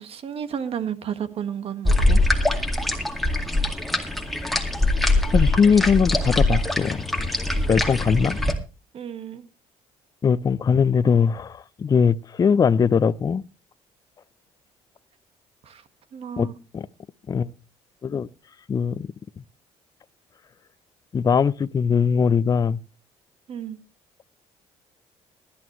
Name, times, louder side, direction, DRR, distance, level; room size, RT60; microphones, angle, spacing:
voice 1, 0.0-2.2 8.9-9.5 15.6-15.8 16.1-16.5 23.5-23.8, right 8 dB, 55° right, 1.6 m, -32 dB
sound 1, 1.8-8.5, left 2 dB, ahead, 2.1 m, -22 dB
voice 2, 5.3-7.0 7.7-8.4 10.2-13.4 16.4-16.9 17.3-17.5 18.0-18.3 18.7-19.1 21.1-22.8, left 6 dB, 30° left, 0.5 m, -21 dB
18.5 x 11.5 x 3.1 m
cardioid pair, 105°, 12 cm